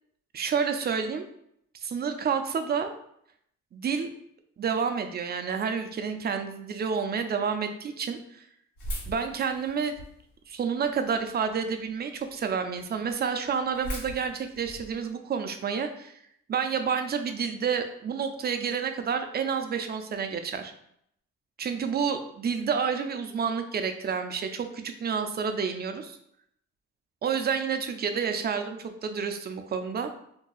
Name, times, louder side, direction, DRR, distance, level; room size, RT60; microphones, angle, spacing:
voice 1, 0.3-1.2 1.8-2.9 3.7-4.1 4.6-8.4 9.1-9.9 10.5-16.2 16.5-20.7 21.6-26.2 27.2-30.1, right 6 dB, 35° right, 7 dB, 0.4 m, -29 dB
sound 1, 8.8-10.3 10.8-11.5 12.0-12.1 12.3-12.4 12.8-12.9 13.0-15.1, equal, 80° left, 1.1 m, -38 dB
2.7 x 2.2 x 3.9 m, 0.72 s
cardioid pair, 90°, 30 cm